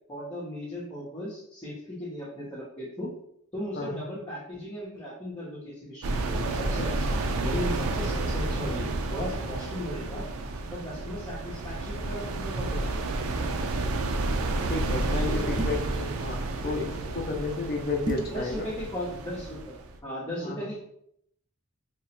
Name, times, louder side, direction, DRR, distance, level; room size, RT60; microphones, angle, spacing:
voice 1, 0.1-3.1 3.5-10.2 10.7-13.1 15.1-15.8 18.3-19.8 20.0-20.8, equal, 20° left, -9 dB, 1.0 m, -37 dB
sound 1, 6.0-20.0, right 2 dB, 85° right, 0.5 m, -31 dB
voice 2, 14.7-18.7 20.4-20.7, left 3 dB, 45° left, 3 dB, 0.6 m, -32 dB
sound 2, 15.6-16.0 18.0-18.4, right 1 dB, 20° right, 0.5 m, -32 dB
2.9 x 2.4 x 4.3 m, 0.74 s
head